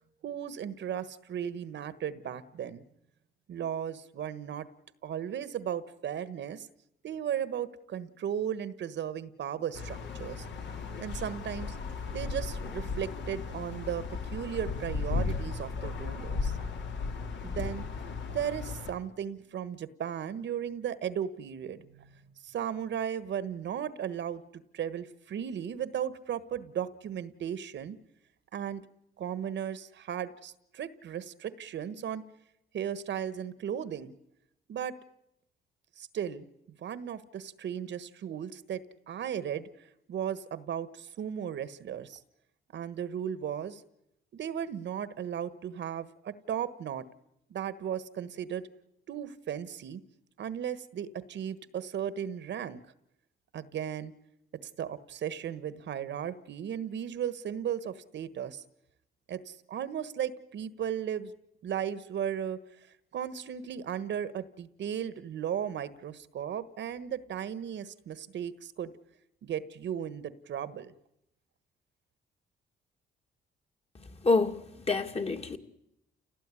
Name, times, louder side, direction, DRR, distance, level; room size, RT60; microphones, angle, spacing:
voice 1, 0.2-2.8 3.5-4.7 5.0-6.7 7.0-10.4 11.0-11.8 12.1-14.0 14.3-16.6 17.4-17.8 18.3-28.0 28.5-28.8 29.2-32.2 32.7-34.1 34.7-34.9 36.0-36.5 36.8-42.2 42.7-43.8 44.3-47.0 47.5-48.7 49.1-50.0 50.4-52.8 53.5-54.1 54.8-58.6 59.3-61.3 61.6-62.6 63.1-68.9 69.4-70.9, right 9 dB, 65° right, 1.4 m, -36 dB
sound 1, 9.7-18.9, left 4 dB, 65° left, 3.4 m, -36 dB
voice 2, 74.2-75.6, left 3 dB, 30° left, 2.4 m, -27 dB
29.0 x 17.5 x 9.8 m
cardioid pair, 90°, 20 cm